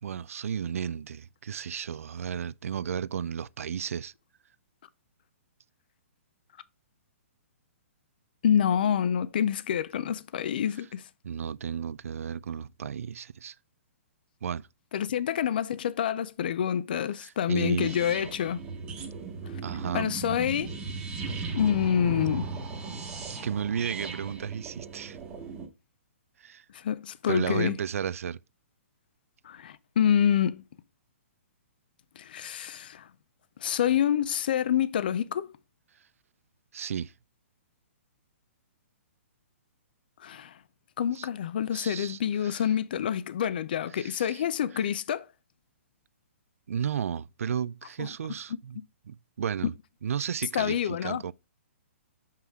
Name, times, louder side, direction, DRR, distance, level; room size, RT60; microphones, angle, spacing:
voice 1, 0.0-4.1 11.2-13.6 14.4-14.7 17.2-18.0 19.6-20.1 23.3-25.2 26.4-26.6 27.3-28.4 36.7-37.1 41.1-41.3 41.7-42.6 43.9-44.4 46.7-48.8 49.1-49.7 50.0-51.3, right 8 dB, 90° right, 0.4 m, -33 dB
voice 2, 8.4-11.0 14.9-18.6 19.9-20.7 21.5-22.5 26.7-27.8 29.4-30.6 32.2-33.1 33.6-35.5 40.2-40.5 41.0-45.3 48.0-48.1 48.5-48.6 49.6-49.7 50.5-51.2, left 9 dB, 40° left, 0.4 m, -27 dB
sound 1, 17.8-25.6, right 4 dB, 10° right, 1.1 m, -37 dB
6.1 x 5.6 x 3.4 m
hypercardioid pair, 175°, 7 cm